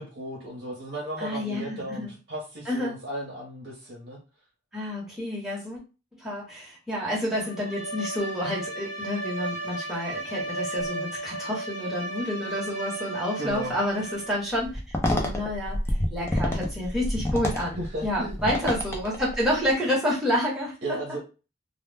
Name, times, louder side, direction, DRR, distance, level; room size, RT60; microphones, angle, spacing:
voice 1, 0.0-4.2 13.4-13.8 17.8-18.4 20.8-21.2, right 1 dB, 65° right, -3 dB, 0.7 m, -35 dB
voice 2, 1.2-2.1 2.7-3.0 4.7-5.8 6.1-14.8 15.1-15.8 16.1-20.7, left 1 dB, 5° right, -5 dB, 0.9 m, -29 dB
Bowed string instrument, 7.4-14.5, right 2 dB, 75° left, 0.8 m, -34 dB
sound 1, 14.6-19.6, left 1 dB, 15° left, 0.4 m, -28 dB
2.1 x 2.1 x 3.2 m, 0.31 s
head